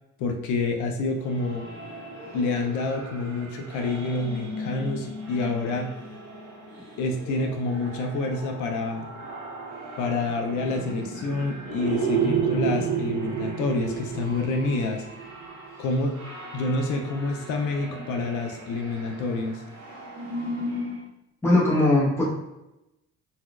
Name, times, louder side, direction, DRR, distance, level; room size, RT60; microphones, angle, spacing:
voice 1, 0.2-1.7 2.3-5.9 7.0-9.1 10.0-15.0 15.8-16.1 16.5-19.6, left 3 dB, 80° left, 3 dB, 0.5 m, -28 dB
sound 1, 1.2-21.1, right 4 dB, 65° right, 1.1 m, -34 dB
voice 2, 21.4-22.2, left 2 dB, 10° left, -7 dB, 1.0 m, -19 dB
4.0 x 2.2 x 2.3 m, 0.93 s
cardioid pair, 155°, 30 cm